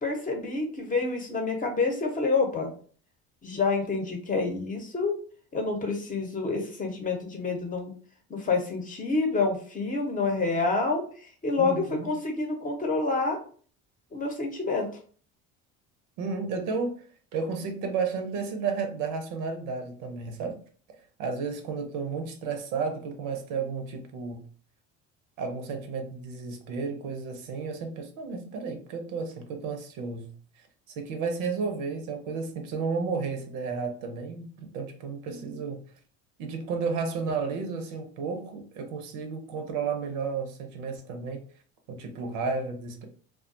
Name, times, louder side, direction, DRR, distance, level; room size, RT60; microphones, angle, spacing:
voice 1, 0.0-2.7 3.4-5.2 5.5-7.9 8.3-11.0 11.4-13.4 14.1-14.9 35.3-35.6, left 3 dB, 25° left, 3 dB, 0.8 m, -28 dB
voice 2, 11.6-12.1 16.2-16.9 17.3-20.6 21.2-24.5 25.4-30.3 31.0-34.5 34.7-35.8 36.4-41.4 41.9-43.1, right 5 dB, 75° right, 5 dB, 0.7 m, -32 dB
2.4 x 2.2 x 2.5 m, 0.44 s
supercardioid pair, 90°, 31 cm